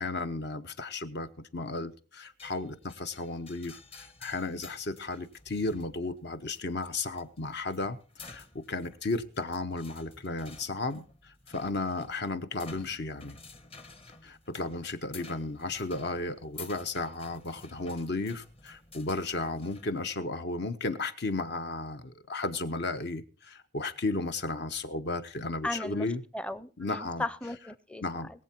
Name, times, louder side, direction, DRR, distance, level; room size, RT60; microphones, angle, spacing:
voice 1, 0.0-8.0 8.2-11.0 11.5-13.4 14.2-26.2 26.8-27.2 28.0-28.4, left 3 dB, 60° left, 10 dB, 1.0 m, -34 dB
sound 1, 2.4-19.9, left 3 dB, 30° left, 1.2 m, -52 dB
voice 2, 25.6-26.1 26.3-28.0 28.3-28.4, left 1 dB, 5° left, 15 dB, 0.6 m, -36 dB
21.5 x 7.6 x 4.4 m, 0.38 s
head